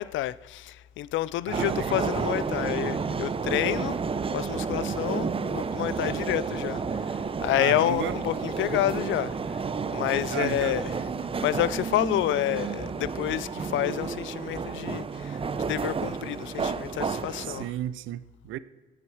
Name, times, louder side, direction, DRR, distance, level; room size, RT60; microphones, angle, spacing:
voice 1, 0.0-4.0 4.3-6.8 7.4-9.6 9.9-10.9 11.4-17.7, left 14 dB, 75° left, 0.4 m, -29 dB
sound 1, 1.5-17.7, right 5 dB, 30° right, 0.6 m, -31 dB
voice 2, 1.5-2.0 7.5-8.2 10.1-10.8 17.4-18.6, right 13 dB, 80° right, 0.5 m, -34 dB
17.0 x 6.0 x 4.6 m
cardioid pair, 90°, 20 cm